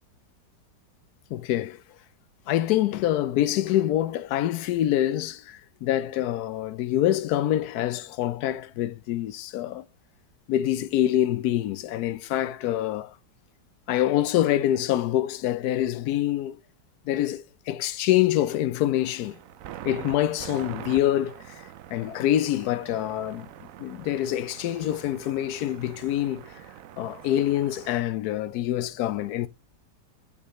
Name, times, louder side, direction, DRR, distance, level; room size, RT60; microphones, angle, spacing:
voice 1, 1.3-1.8 2.5-9.8 10.5-13.1 13.9-16.6 17.0-19.4 19.8-21.6 21.9-23.5 23.8-26.5 27.0-29.5, left 13 dB, 70° left, 1.0 m, -25 dB
sound 1, 19.0-28.0, right 11 dB, 70° right, 0.8 m, -44 dB
6.7 x 5.3 x 3.0 m
omnidirectional pair, 1.9 m